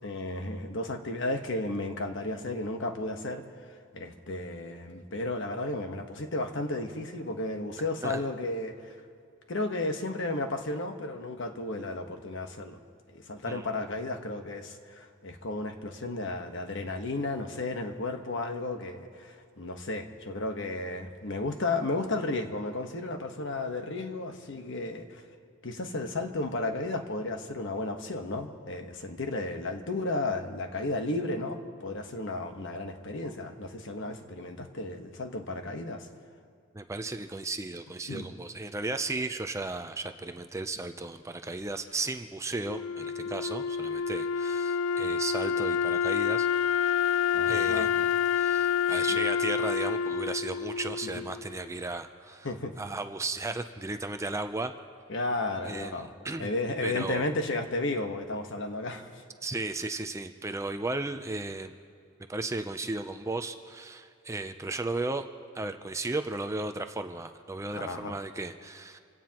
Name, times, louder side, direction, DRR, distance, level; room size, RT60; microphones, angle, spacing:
voice 1, 0.0-3.4 3.9-8.9 9.5-12.8 13.1-25.2 25.6-36.1 38.1-38.3 47.3-47.9 51.1-51.2 52.4-52.7 55.1-56.1 56.4-59.1 67.7-68.2, left 2 dB, 60° left, 5 dB, 1.2 m, -33 dB
voice 2, 36.7-46.5 47.5-52.5 52.8-54.7 55.6-56.5 56.8-57.3 59.4-61.8 62.3-65.2 65.5-69.0, right 2 dB, 15° right, 8 dB, 0.5 m, -35 dB
Wind instrument woodwind instrument, 42.6-51.7, left 7 dB, 75° left, 0.3 m, -28 dB
27.0 x 17.0 x 3.0 m, 2.3 s
head